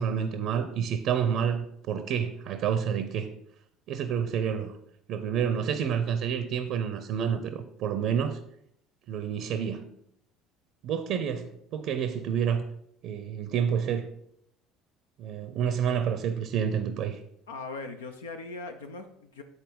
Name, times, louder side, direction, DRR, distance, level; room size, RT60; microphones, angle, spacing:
voice 1, 0.0-3.3 3.9-4.8 5.1-8.4 9.1-9.8 10.8-12.6 13.0-14.1 15.2-17.2, right 8 dB, 55° right, 9 dB, 0.6 m, -29 dB
voice 2, 17.5-19.4, left 3 dB, 80° left, 7 dB, 0.5 m, -39 dB
8.0 x 4.1 x 5.1 m, 0.74 s
figure-of-eight pair, 60°, 0 cm